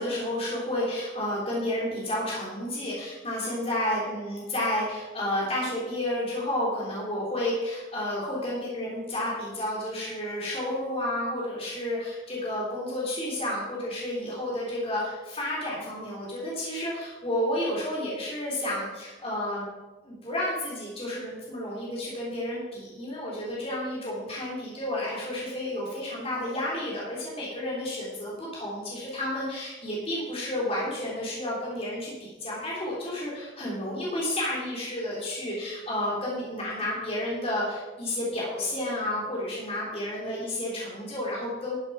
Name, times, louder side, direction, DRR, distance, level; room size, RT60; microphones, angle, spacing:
voice 1, 0.0-19.7 20.0-41.8, left 1 dB, 30° left, -5 dB, 3.5 m, -31 dB
13.0 x 7.5 x 5.8 m, 1.2 s
head